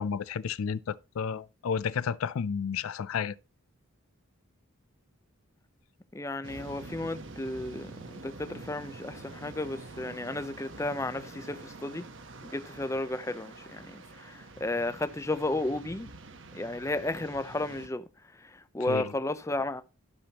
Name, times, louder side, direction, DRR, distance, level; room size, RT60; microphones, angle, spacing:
voice 1, 0.0-3.3 18.9-19.1, left 6 dB, 80° left, 0.4 m, -31 dB
voice 2, 6.1-12.1 12.4-16.1 16.5-18.0 18.3-19.8, left 2 dB, 15° left, 0.5 m, -33 dB
sound 1, 6.4-17.9, right 3 dB, 60° right, 1.0 m, -46 dB
13.0 x 6.1 x 2.9 m
head